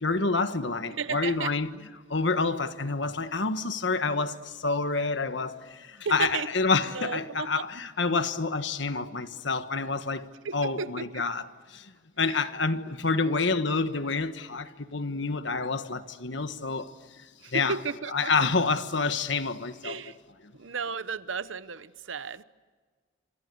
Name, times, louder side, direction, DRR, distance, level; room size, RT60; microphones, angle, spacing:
voice 1, 0.0-1.7 2.1-11.4 11.7-11.9 12.2-16.9 17.5-17.7 18.1-20.0, left 4 dB, 65° left, 1.4 m, -28 dB
voice 2, 0.9-1.5 6.0-6.5 6.8-7.7 10.4-11.2 12.3-12.5 17.4-18.5 19.8-20.2 20.5-22.4, right 5 dB, 80° right, 0.9 m, -34 dB
27.0 x 26.5 x 8.1 m
head